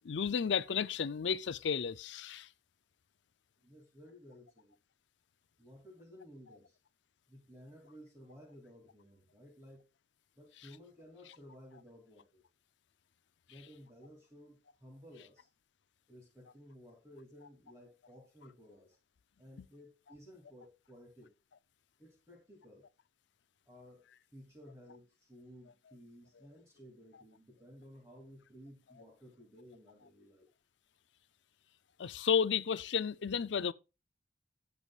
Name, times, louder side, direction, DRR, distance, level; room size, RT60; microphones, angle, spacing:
voice 1, 0.0-2.5 32.0-33.7, left 7 dB, 85° left, 0.5 m, -32 dB
voice 2, 3.6-4.8 5.6-6.8 7.3-9.9 10.4-12.4 13.5-15.5 16.1-19.0 19.4-21.3 22.0-22.8 23.7-30.5, equal, 15° right, 2.7 m, -56 dB
17.0 x 6.9 x 2.4 m
head